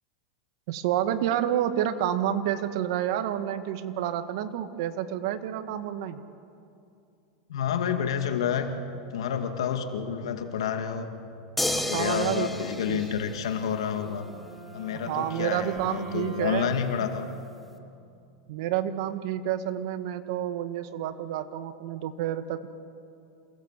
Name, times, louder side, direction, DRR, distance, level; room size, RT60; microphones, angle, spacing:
voice 1, 0.7-6.2 11.9-12.6 12.9-13.0 15.1-16.7 18.5-22.7, right 11 dB, 60° right, 9 dB, 1.5 m, -29 dB
voice 2, 7.5-8.7 9.1-11.1 11.6-14.3 14.7-17.3, left 8 dB, 90° left, 6 dB, 2.2 m, -29 dB
sound 1, 11.6-14.0 15.8-15.9, left 1 dB, 5° left, 1.4 m, -32 dB
Wind instrument woodwind instrument, 13.9-18.1, right 3 dB, 20° right, 5.4 m, -46 dB
28.0 x 17.0 x 7.6 m, 2.6 s
supercardioid pair, 140°, 3 cm